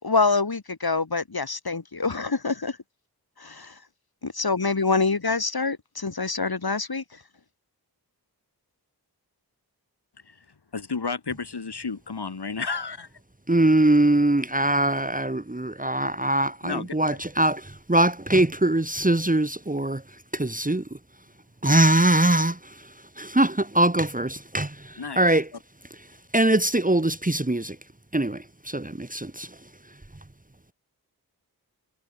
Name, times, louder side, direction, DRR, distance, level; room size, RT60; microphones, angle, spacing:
voice 1, 0.0-2.8 3.4-3.7 4.2-7.0, left 4 dB, 70° left, 4.8 m, -25 dB
voice 2, 10.7-13.1 16.6-17.2 21.7-21.9 25.0-25.3, left 4 dB, 85° left, 3.5 m, -32 dB
voice 3, 13.5-21.0 21.6-25.5 26.3-27.8 28.1-29.6, right 1 dB, 20° right, 2.1 m, -22 dB
wide cardioid pair, 70°, 39 cm